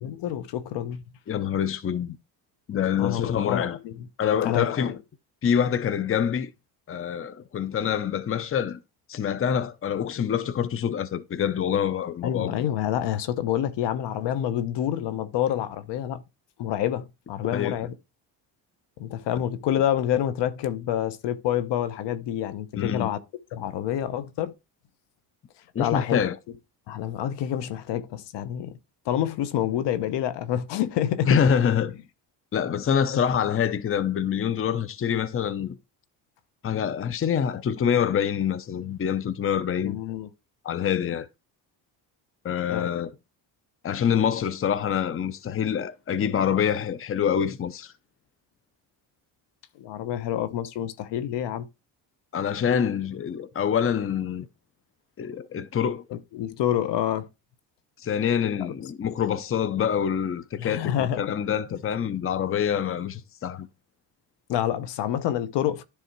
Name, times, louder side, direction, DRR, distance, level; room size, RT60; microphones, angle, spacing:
voice 1, 0.0-1.0 3.0-4.1 4.4-5.0 12.2-16.2 16.6-17.9 19.0-23.2 23.5-24.5 25.8-26.2 26.9-28.7 29.1-31.4 39.8-40.3 42.7-42.9 49.8-51.7 56.1-57.3 58.6-58.7 60.6-61.4 64.5-65.8, left 11 dB, 70° left, 0.9 m, -28 dB
voice 2, 1.3-2.2 2.7-3.8 4.2-4.9 5.4-6.5 6.9-8.8 9.1-12.5 17.5-17.7 22.8-23.1 25.7-26.4 31.3-32.0 32.5-35.8 36.6-40.0 40.6-41.3 42.4-43.1 43.8-47.9 52.3-54.5 55.2-56.0 58.0-63.7, left 8 dB, 30° left, 0.7 m, -26 dB
10.0 x 3.5 x 4.5 m
supercardioid pair, 80°, 43 cm